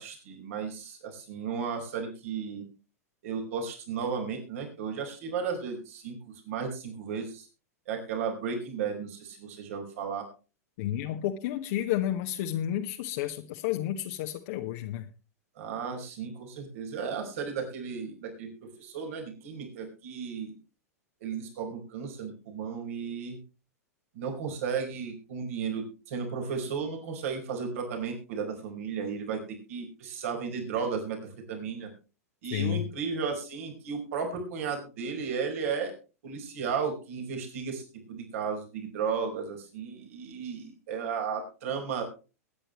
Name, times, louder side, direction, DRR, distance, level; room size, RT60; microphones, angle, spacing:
voice 1, 0.0-2.6 3.2-7.5 7.9-10.3 15.6-20.5 21.2-23.4 24.1-29.4 29.7-31.2 31.5-31.9 32.4-35.9 36.2-37.8 38.1-42.0, right 6 dB, 60° right, 3 dB, 4.7 m, -34 dB
voice 2, 10.8-15.1 32.5-32.9, left 12 dB, 55° left, 2 dB, 1.4 m, -31 dB
22.0 x 9.9 x 3.1 m, 0.33 s
figure-of-eight pair, 95°, 9 cm